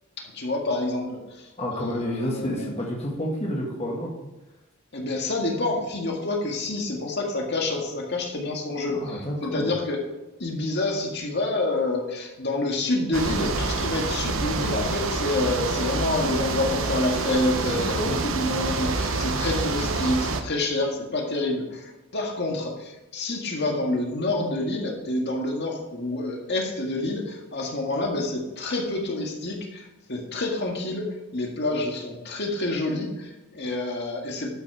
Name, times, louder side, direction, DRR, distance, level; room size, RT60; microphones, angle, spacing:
voice 1, 0.2-2.7 4.9-10.0 10.4-29.8 30.1-31.1 31.3-34.5, left 2 dB, 50° left, 0 dB, 1.9 m, -28 dB
voice 2, 1.6-4.1 8.9-9.7 17.7-18.1, equal, 30° left, -2 dB, 1.6 m, -30 dB
sound 1, 13.1-20.4, right 3 dB, 65° right, 1.0 m, -27 dB
12.0 x 6.1 x 4.9 m, 1.1 s
head